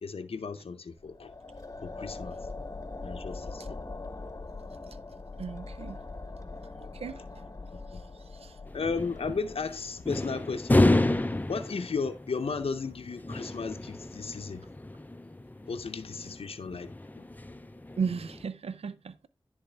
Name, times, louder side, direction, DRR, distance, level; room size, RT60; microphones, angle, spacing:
voice 1, 0.0-1.3 1.8-2.4 3.0-3.8 7.9-8.0 8.7-11.1 11.5-14.6 15.7-17.2, left 5 dB, 75° left, 0.6 m, -35 dB
sound 1, 1.0-10.3, left 3 dB, 35° left, 0.9 m, -42 dB
voice 2, 5.4-6.0 6.8-7.4 7.9-8.6 18.0-19.3, right 5 dB, 85° right, 0.4 m, -36 dB
sound 2, 8.7-18.4, left 1 dB, 15° left, 0.4 m, -31 dB
10.5 x 3.5 x 3.3 m
cardioid pair, 40°, 10 cm